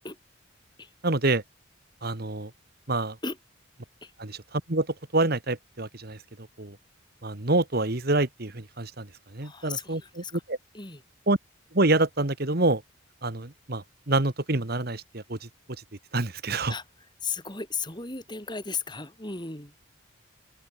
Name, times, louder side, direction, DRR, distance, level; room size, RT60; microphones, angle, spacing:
voice 1, 1.0-1.4 2.0-2.5 2.9-3.2 4.2-4.9 5.1-6.2 6.6-6.8 7.2-9.1 9.3-10.6 11.3-11.4 11.7-12.8 13.2-15.5 16.1-16.7, right 2 dB, 50° right, 1.6 m, -26 dB
voice 2, 9.4-10.3 10.7-11.0 16.7-16.8 17.2-19.7, left 5 dB, 20° left, 6.3 m, -35 dB
open air
head